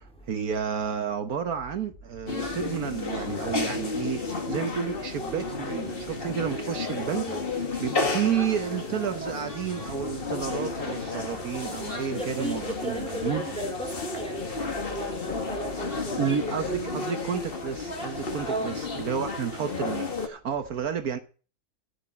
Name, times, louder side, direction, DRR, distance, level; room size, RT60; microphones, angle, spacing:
voice 1, 0.0-7.3 7.5-13.4 16.2-21.2, right 8 dB, 65° right, 1.5 m, -31 dB
sound 1, 2.3-20.3, left 3 dB, 35° left, 1.9 m, -32 dB
voice 2, 7.2-7.5 12.1-14.5 14.8-16.3 18.4-18.7, right 1 dB, 5° left, 2.9 m, -34 dB
13.5 x 6.0 x 8.6 m
omnidirectional pair, 1.7 m